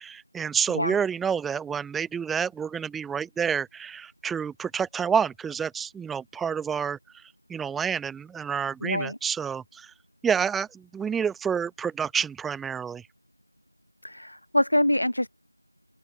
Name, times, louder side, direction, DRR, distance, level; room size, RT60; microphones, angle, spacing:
voice 1, 0.0-7.0 7.5-9.9 10.2-13.0, right 7 dB, ahead, 1.0 m, -28 dB
voice 2, 8.8-9.2 14.0-15.3, left 1 dB, 60° left, 7.3 m, -25 dB
open air
figure-of-eight pair, 175°, 0 cm